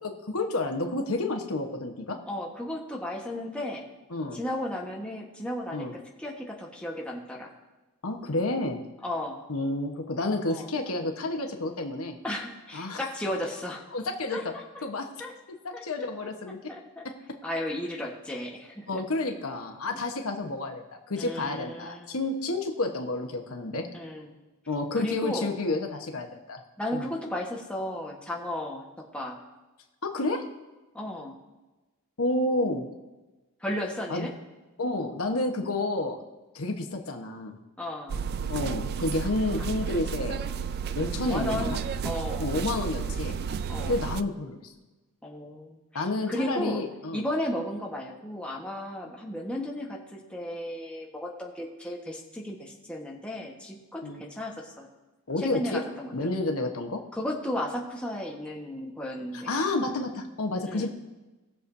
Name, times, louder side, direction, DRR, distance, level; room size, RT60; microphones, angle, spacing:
voice 1, 0.0-2.2 4.1-4.4 5.7-5.9 8.0-8.8 9.5-12.2 12.7-13.0 13.9-14.4 14.8-15.1 15.6-16.7 17.0-17.1 18.9-23.9 24.7-26.6 26.9-27.1 30.0-30.4 32.2-32.9 34.1-34.3 34.8-36.2 36.5-37.6 38.5-40.4 41.0-41.8 42.4-43.4 43.8-44.7 45.9-47.2 54.0-54.2 55.3-55.8 56.1-57.0 59.3-60.9, left 2 dB, 80° left, 4 dB, 1.1 m, -30 dB
voice 2, 2.3-3.9 4.3-7.5 9.0-9.4 10.5-10.7 12.2-13.8 14.3-14.4 15.2-15.3 15.7-15.8 16.7-17.1 17.4-19.0 21.2-22.1 23.9-24.3 24.9-25.5 26.8-29.4 30.9-31.3 33.6-34.3 37.8-38.2 41.2-41.8 42.0-42.6 43.7-44.0 45.2-46.8 47.1-54.9 55.4-56.1 57.1-59.5 60.6-60.9, left 1 dB, 5° left, -2 dB, 1.2 m, -34 dB
sound 1, 38.1-44.2, right 6 dB, 45° right, 0.3 m, -32 dB
19.5 x 6.9 x 2.6 m, 1.1 s
head